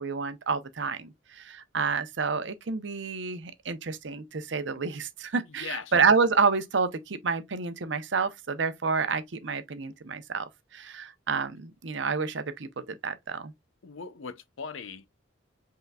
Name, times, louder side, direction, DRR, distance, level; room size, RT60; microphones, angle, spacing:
voice 1, 0.0-13.5, right 5 dB, 70° right, 0.7 m, -29 dB
voice 2, 5.5-5.9 13.8-15.1, left 5 dB, 85° left, 0.6 m, -39 dB
5.6 x 3.8 x 2.3 m
head